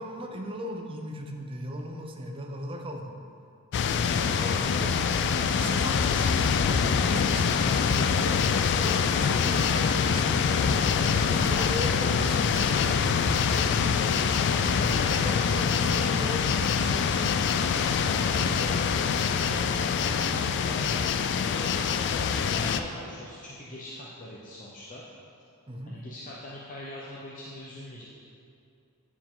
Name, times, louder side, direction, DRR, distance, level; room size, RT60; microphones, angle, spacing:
voice 1, 0.0-3.2 4.2-5.0 5.4-8.4 8.7-10.6 11.0-13.7 14.9-17.3 25.7-26.0, equal, 25° right, 2 dB, 0.6 m, -38 dB
sound 1, 3.7-22.8, left 6 dB, 55° left, 0.3 m, -25 dB
voice 2, 14.7-15.6 18.2-21.0 21.4-25.0 25.9-28.1, left 1 dB, 35° left, -5 dB, 0.7 m, -41 dB
9.9 x 4.7 x 3.7 m, 2.5 s
head